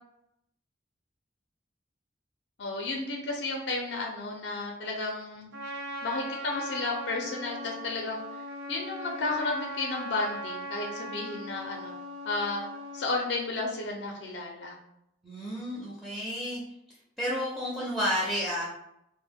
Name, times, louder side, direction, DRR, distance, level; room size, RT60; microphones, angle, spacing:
voice 1, 2.6-5.5 6.0-8.2 8.7-11.9 12.3-12.7 12.9-14.7, left 3 dB, 70° left, 1 dB, 0.4 m, -32 dB
Trumpet, 5.5-13.1, equal, 75° right, 0.7 m, -39 dB
voice 2, 15.2-16.6 17.2-18.6, equal, ahead, -7 dB, 0.4 m, -31 dB
2.1 x 2.0 x 3.4 m, 0.79 s
head